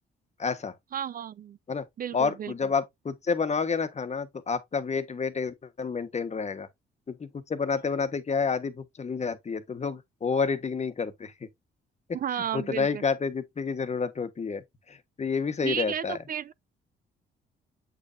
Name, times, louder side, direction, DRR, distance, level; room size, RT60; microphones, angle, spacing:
voice 1, 0.4-0.7 1.7-1.9 2.1-6.7 7.1-11.3 12.5-16.2, left 5 dB, 35° left, 1.3 m, -29 dB
voice 2, 0.9-1.6 2.0-2.5 12.1-13.0 15.6-16.5, right 9 dB, 45° right, 0.4 m, -33 dB
8.2 x 5.4 x 2.6 m
cardioid pair, 90°, 20 cm